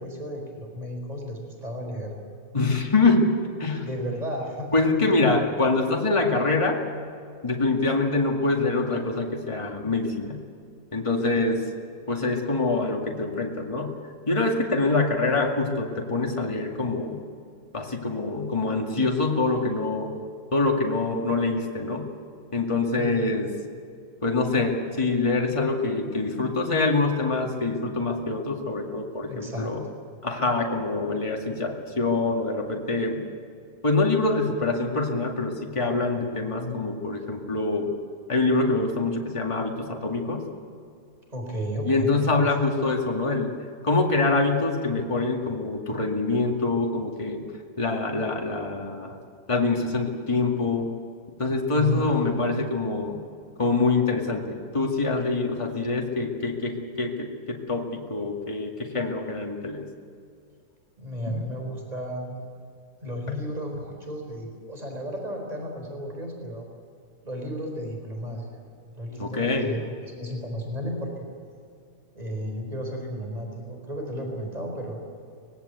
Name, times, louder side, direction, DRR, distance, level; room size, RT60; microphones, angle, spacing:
voice 1, 0.0-2.1 3.8-4.7 5.0-5.2 11.3-11.5 22.9-23.4 29.3-29.7 41.3-42.5 51.7-52.3 61.0-62.4 63.0-66.6 67.2-68.6 68.9-71.1 72.1-75.0, equal, 25° right, 1 dB, 4.6 m, -33 dB
voice 2, 2.5-3.9 4.7-6.8 7.4-10.4 10.9-11.6 12.1-14.0 14.3-17.2 17.7-20.1 20.5-22.1 22.5-23.5 24.2-29.8 30.2-33.2 33.8-37.9 38.3-40.4 41.8-43.5 43.8-47.4 47.8-49.2 49.5-50.9 51.4-53.2 53.6-59.9 61.3-61.4 69.2-69.8, left 3 dB, 20° left, 1 dB, 2.3 m, -25 dB
24.0 x 19.5 x 8.2 m, 2.4 s
omnidirectional pair, 1.6 m